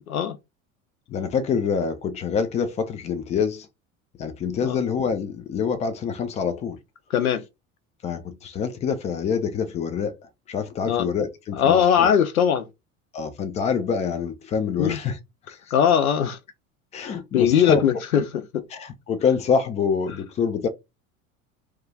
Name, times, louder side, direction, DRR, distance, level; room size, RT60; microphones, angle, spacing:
voice 1, 1.1-3.7 4.2-6.8 8.0-12.1 13.1-15.2 15.5-15.7 16.9-17.8 18.7-20.7, left 6 dB, 20° left, 0.3 m, -26 dB
voice 2, 11.6-12.7 14.8-15.0 15.7-16.4 17.3-17.9 18.5-18.6, left 8 dB, 80° left, 0.5 m, -19 dB
2.9 x 2.3 x 2.2 m
figure-of-eight pair, 70°, 42 cm